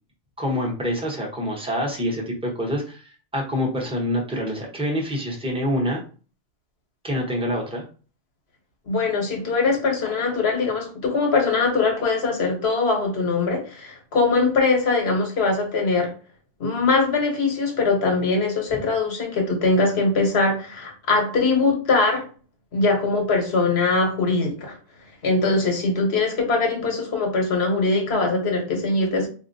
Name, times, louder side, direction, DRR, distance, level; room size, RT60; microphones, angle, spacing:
voice 1, 0.4-6.0 7.0-7.8, equal, 5° right, -1 dB, 0.7 m, -26 dB
voice 2, 8.9-16.1 16.6-22.2 22.7-24.8 25.2-29.3, left 3 dB, 75° left, 2 dB, 1.3 m, -22 dB
4.1 x 2.6 x 2.6 m, 0.38 s
omnidirectional pair, 1.1 m